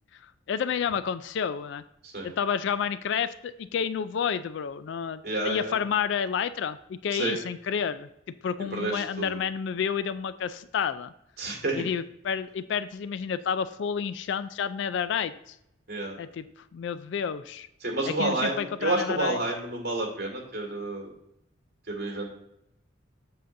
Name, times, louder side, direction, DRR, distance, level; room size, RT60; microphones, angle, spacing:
voice 1, 0.1-1.8 2.2-11.1 11.8-15.6 16.2-16.4 16.7-17.7 18.1-19.4, left 7 dB, 60° left, 13 dB, 0.3 m, -30 dB
voice 2, 5.2-5.8 7.1-7.4 8.7-9.4 11.4-11.9 15.9-16.1 17.8-21.1 21.9-22.3, right 2 dB, 50° right, 0 dB, 1.9 m, -30 dB
7.7 x 6.6 x 2.6 m, 0.80 s
head